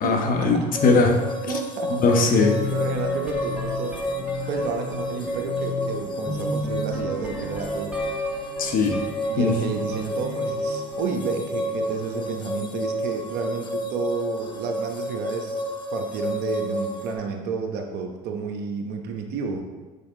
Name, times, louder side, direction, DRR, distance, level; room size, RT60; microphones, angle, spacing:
voice 1, 0.0-1.2 1.9-2.5 8.6-9.0 9.4-9.5, left 3 dB, 50° left, 3 dB, 1.1 m, -20 dB
sound 1, 0.7-17.1, equal, 25° left, 1.0 m, -30 dB
voice 2, 1.5-1.9 2.7-8.0 9.3-15.6 15.9-19.6, right 5 dB, 60° right, 3 dB, 1.0 m, -31 dB
sound 2, 2.3-12.1, left 2 dB, 5° right, 1.5 m, -34 dB
6.9 x 5.3 x 3.8 m, 1.3 s
hypercardioid pair, 80°, 19 cm